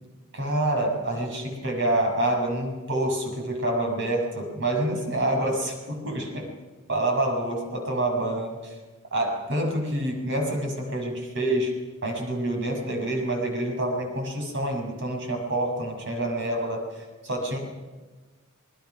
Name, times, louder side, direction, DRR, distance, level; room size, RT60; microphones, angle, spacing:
voice 1, 0.3-6.5 6.9-8.8 9.1-11.7 12.0-17.6, right 1 dB, 60° right, 2 dB, 6.1 m, -27 dB
27.5 x 20.5 x 6.0 m, 1.3 s
head